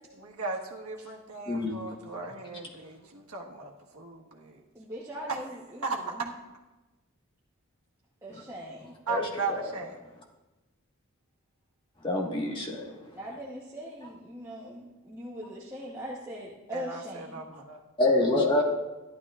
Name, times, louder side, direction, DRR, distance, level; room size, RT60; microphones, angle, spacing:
voice 1, 0.2-4.6 5.3-5.4 5.8-6.3 9.1-10.0 16.7-17.8, right 4 dB, 85° right, 0 dB, 1.5 m, -36 dB
voice 2, 1.5-1.8 8.3-8.4 9.1-9.3 12.0-12.9 18.0-18.6, left 2 dB, 25° left, -1 dB, 1.5 m, -26 dB
voice 3, 4.7-6.2 8.2-8.9 13.1-17.4, equal, 15° right, -5 dB, 1.0 m, -41 dB
14.5 x 11.5 x 2.4 m, 1.1 s
head